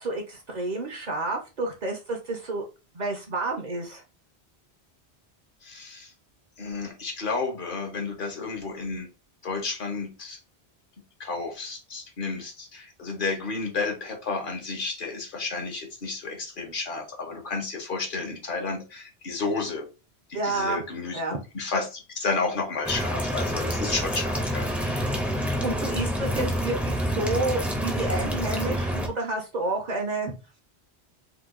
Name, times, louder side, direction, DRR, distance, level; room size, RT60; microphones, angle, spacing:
voice 1, 0.0-2.7 2.9-4.0 20.3-20.8 21.1-21.4 25.3-30.3, right 2 dB, 50° right, 2 dB, 0.7 m, -30 dB
voice 2, 5.6-6.1 6.6-9.1 9.4-10.4 11.2-19.9 20.3-21.2 21.5-25.0, left 4 dB, 55° left, 3 dB, 0.9 m, -31 dB
sound 1, 22.8-29.1, equal, ahead, 0.5 m, -27 dB
2.9 x 2.2 x 3.5 m, 0.30 s
omnidirectional pair, 1.1 m